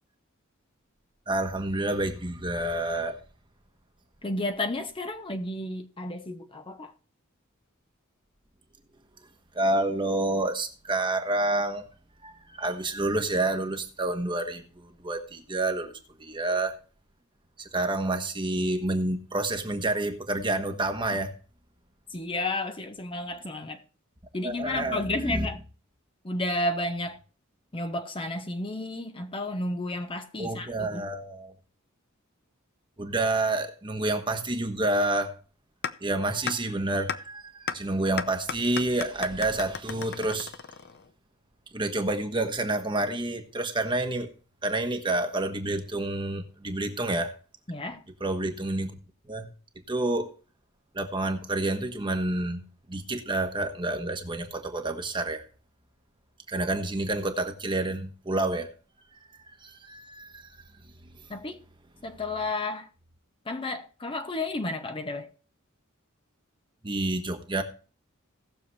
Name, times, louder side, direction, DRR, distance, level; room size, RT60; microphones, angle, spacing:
voice 1, 1.3-3.2 9.5-11.8 12.2-15.9 16.2-16.7 17.6-21.3 24.4-25.5 30.4-31.5 33.0-35.3 36.0-40.5 41.7-44.3 44.6-47.4 48.2-48.9 49.3-49.5 49.9-50.3 50.9-52.6 52.9-55.5 56.5-58.7 59.1-59.2 59.6-60.5 66.8-67.6, right 2 dB, 25° right, 1.3 m, -29 dB
voice 2, 4.2-6.9 22.1-23.8 24.3-25.6 26.2-27.2 27.7-31.0 47.7-48.0 61.3-61.6 62.0-62.9 63.5-65.3, left 2 dB, 25° left, 0.8 m, -32 dB
sound 1, 35.8-35.9 36.5-36.6 37.1-37.2 37.7-37.8 38.2-41.1, left 7 dB, 50° left, 0.7 m, -32 dB
18.0 x 7.0 x 3.2 m
head